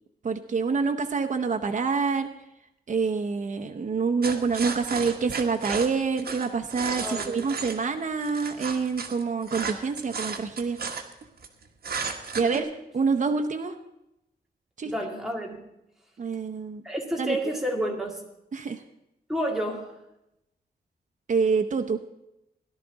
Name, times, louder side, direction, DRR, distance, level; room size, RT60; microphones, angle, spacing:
voice 1, 0.2-2.3 2.9-10.8 12.4-12.7 12.9-13.7 14.8-14.9 16.2-16.8 17.2-17.4 18.5-18.8 21.3-22.0, right 5 dB, 50° right, 5 dB, 0.8 m, -26 dB
sound 1, 4.2-7.8 8.2-11.5 11.8-12.6, right 5 dB, 65° right, 1.4 m, -33 dB
voice 2, 7.0-7.4 12.4-12.7 14.8-15.6 16.8-18.2 19.3-19.9, right 1 dB, ahead, -1 dB, 2.2 m, -30 dB
17.5 x 11.5 x 4.0 m, 0.86 s
wide cardioid pair, 160°, 17 cm